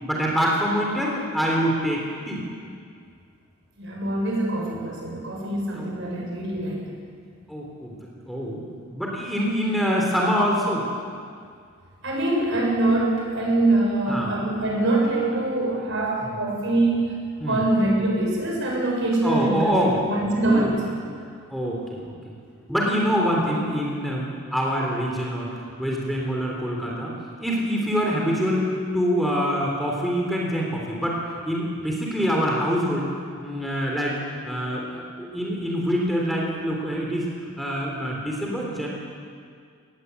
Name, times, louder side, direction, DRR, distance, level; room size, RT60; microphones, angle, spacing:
voice 1, 0.0-2.4 5.7-5.9 7.5-7.9 8.3-8.6 8.9-10.8 14.1-14.4 17.4-17.6 19.2-20.7 21.5-22.1 22.7-25.5 25.8-27.1 27.4-31.2 31.4-33.1 33.4-34.1 34.4-37.3 37.6-38.9, equal, ahead, -2 dB, 3.4 m, -25 dB
voice 2, 3.8-6.8 12.0-20.8, right 2 dB, 60° right, -2 dB, 7.0 m, -24 dB
22.5 x 19.0 x 8.4 m, 2.2 s
head